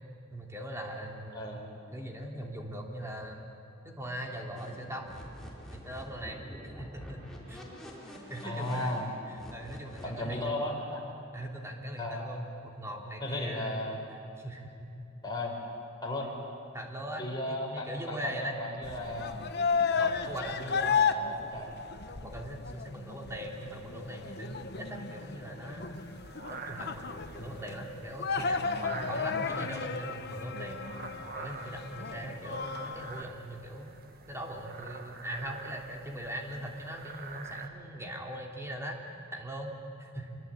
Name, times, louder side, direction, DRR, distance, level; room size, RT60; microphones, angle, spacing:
voice 1, 0.3-1.6 1.9-3.4 3.8-5.2 5.7-7.2 7.5-7.6 8.1-8.9 9.3-10.6 11.3-14.9 16.7-18.6 19.1-19.3 20.0-20.8 22.2-26.0 26.5-30.8 31.3-33.9 34.3-39.7 40.0-40.4, right 1 dB, 15° right, 0 dB, 3.0 m, -40 dB
voice 2, 1.3-1.7 8.4-9.1 10.0-11.0 12.0-12.3 13.2-14.0 15.2-15.5 16.0-16.3 17.2-19.3 20.3-21.7 27.4-27.5, left 1 dB, 20° left, -2 dB, 5.0 m, -36 dB
sound 1, 4.6-10.1, equal, ahead, 4.7 m, -46 dB
sound 2, 18.8-33.2, left 5 dB, 55° left, 1.0 m, -34 dB
sound 3, 25.9-37.7, right 4 dB, 50° right, 1.6 m, -46 dB
26.0 x 23.5 x 8.8 m, 2.6 s
head